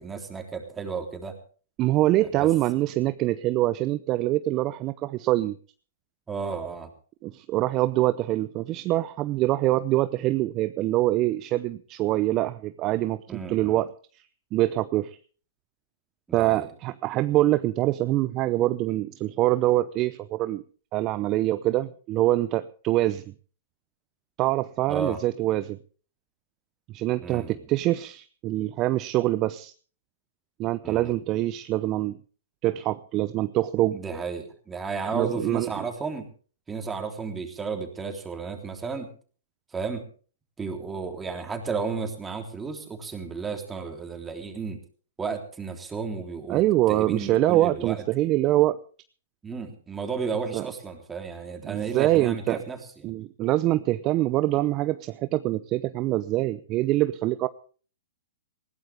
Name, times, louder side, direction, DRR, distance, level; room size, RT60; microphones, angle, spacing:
voice 1, 0.0-1.4 2.2-2.5 6.3-6.9 13.3-13.8 16.3-16.7 24.9-25.2 27.2-27.6 30.8-31.1 33.9-36.3 36.7-39.1 39.7-40.0 40.6-44.8 45.2-46.6 46.9-48.0 49.4-53.1, right 5 dB, 15° right, 4 dB, 3.4 m, -33 dB
voice 2, 1.8-5.6 7.2-14.2 14.5-15.2 16.3-20.6 20.9-23.3 24.4-25.8 26.9-29.7 30.6-32.2 32.6-34.0 35.1-35.7 46.5-48.8 50.5-50.6 51.6-52.6 53.0-57.5, right 16 dB, 35° right, 13 dB, 0.7 m, -24 dB
20.0 x 16.5 x 3.5 m, 0.40 s
hypercardioid pair, 125°, 0 cm